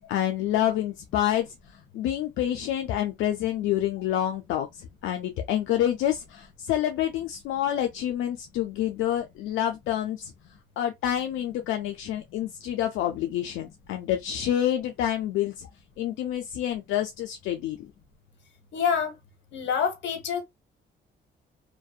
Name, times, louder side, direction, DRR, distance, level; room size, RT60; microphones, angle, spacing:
voice 1, 0.0-10.3 10.8-15.7 16.0-17.9, left 11 dB, 90° left, 0.4 m, -28 dB
voice 2, 18.7-19.1 19.5-20.4, left 7 dB, 65° left, 0.9 m, -26 dB
2.6 x 2.2 x 2.3 m
cardioid pair, 90°, 20 cm